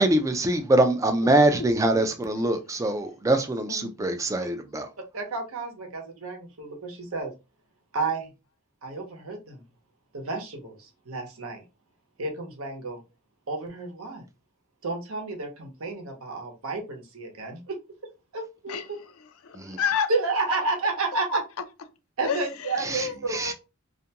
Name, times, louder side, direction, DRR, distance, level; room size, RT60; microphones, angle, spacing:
voice 1, 0.0-4.9 19.6-19.8 22.8-23.1 23.3-23.5, right 1 dB, 15° right, 0.3 m, -23 dB
voice 2, 3.7-4.3 18.7-20.1 20.5-20.6 21.3-21.4 22.2-23.5, left 7 dB, 80° left, 0.4 m, -32 dB
voice 3, 5.1-7.3 7.9-8.3 8.8-9.6 10.1-11.6 12.2-13.0 13.5-14.2 14.8-17.8 18.3-19.0 20.1-21.4 22.2-23.4, right 3 dB, 80° right, 0.8 m, -31 dB
2.5 x 2.1 x 2.8 m
head